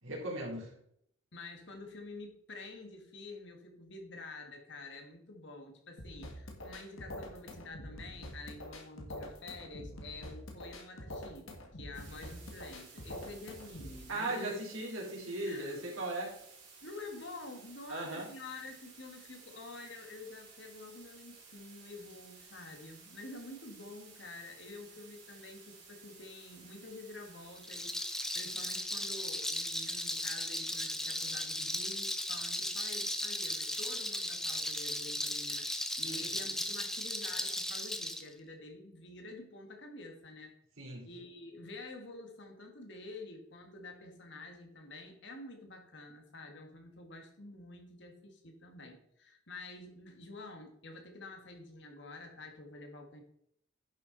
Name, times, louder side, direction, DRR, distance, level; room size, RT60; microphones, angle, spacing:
voice 1, 0.0-0.7 14.1-16.3 17.9-18.3 36.0-36.2 40.8-41.1, right 2 dB, 80° right, -2 dB, 3.6 m, -38 dB
voice 2, 1.3-11.5 11.8-14.5 15.4-15.9 16.8-40.5 41.0-53.2, left 2 dB, 60° left, 3 dB, 1.8 m, -48 dB
sound 1, 6.0-14.0, left 1 dB, 80° left, 1.9 m, -46 dB
sound 2, 11.9-28.8, right 5 dB, 35° right, 4.3 m, -56 dB
Rattle, 27.6-38.2, left 1 dB, ahead, 0.6 m, -36 dB
10.5 x 7.1 x 4.0 m, 0.69 s
head